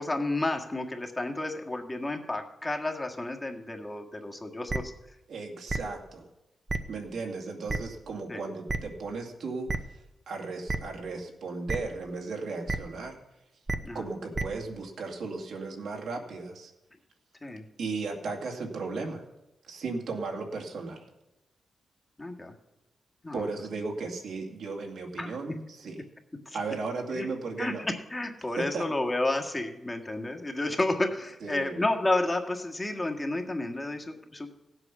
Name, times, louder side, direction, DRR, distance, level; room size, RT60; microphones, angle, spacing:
voice 1, 0.0-4.9 8.3-8.4 13.8-14.0 17.4-17.6 22.2-22.5 23.2-23.5 25.2-25.3 27.1-27.3 27.6-34.5, left 2 dB, 20° left, 3 dB, 1.7 m, -31 dB
sound 1, 4.7-4.8 5.7-5.8 6.7-6.8 7.7-7.8 8.7-8.8 9.7-9.8 10.7-10.8 11.7-11.8 12.7-12.8 13.7-13.8 14.3-14.4, right 3 dB, 25° right, 0.9 m, -28 dB
voice 2, 5.3-6.3 6.9-13.2 13.9-16.7 17.8-19.2 19.6-21.0 23.3-26.0 26.5-27.8 28.6-28.8 31.4-31.8, right 3 dB, 75° right, 1 dB, 2.3 m, -36 dB
16.0 x 8.0 x 6.1 m, 0.95 s
cardioid pair, 90°, 0 cm